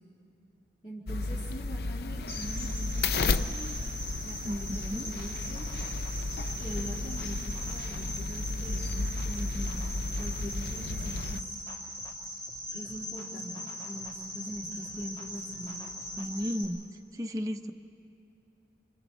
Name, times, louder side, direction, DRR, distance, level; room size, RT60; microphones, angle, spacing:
voice 1, 0.8-3.8 4.2-5.7 6.6-11.4 12.7-15.8, right 1 dB, 35° left, -7 dB, 2.2 m, -42 dB
sound 1, 1.1-11.4, left 3 dB, 55° left, 0.5 m, -33 dB
Cricket, 2.3-16.6, equal, 85° left, 7.1 m, -40 dB
sound 2, 4.5-16.5, equal, 20° left, 2.6 m, -54 dB
voice 2, 4.5-5.1 16.2-16.8 17.1-17.7, equal, 20° right, 3 dB, 0.7 m, -34 dB
28.5 x 26.5 x 4.2 m, 2.9 s
head